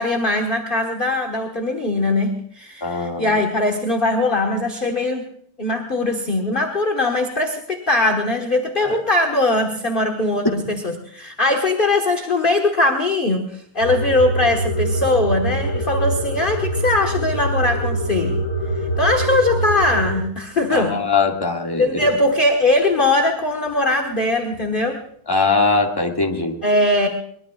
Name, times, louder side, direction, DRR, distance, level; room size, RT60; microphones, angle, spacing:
voice 1, 0.0-5.3 5.6-18.4 19.0-21.0 21.8-25.0 26.6-27.1, left 2 dB, 30° left, 2 dB, 1.4 m, -20 dB
voice 2, 2.8-3.3 8.8-9.0 20.7-22.1 25.3-26.6, left 4 dB, 10° left, 1 dB, 1.9 m, -21 dB
sound 1, 13.8-20.2, right 1 dB, 45° left, 6.8 m, -24 dB
23.5 x 21.5 x 2.4 m, 0.65 s
omnidirectional pair, 2.2 m